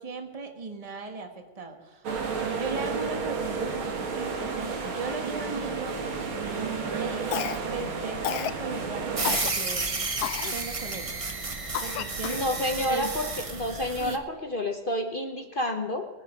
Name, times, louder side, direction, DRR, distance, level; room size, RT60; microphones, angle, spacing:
voice 1, 0.0-2.1 2.5-6.0 6.5-7.4 7.7-9.9 10.5-11.1 11.8-12.4 12.9-13.1 14.0-14.5, right 4 dB, 20° right, 5 dB, 1.2 m, -37 dB
sound 1, 2.0-9.4, right 5 dB, 80° right, 2.4 m, -32 dB
Cough, 7.3-7.8 8.2-8.6 9.2-9.5 10.2-10.6 11.1-11.2 11.7-12.5, left 11 dB, 80° left, 0.8 m, -31 dB
sound 2, 9.2-14.2, right 3 dB, 55° right, 0.3 m, -32 dB
voice 2, 12.3-16.1, left 1 dB, 50° left, 4 dB, 0.6 m, -29 dB
21.0 x 9.7 x 5.0 m, 1.4 s
omnidirectional pair, 2.2 m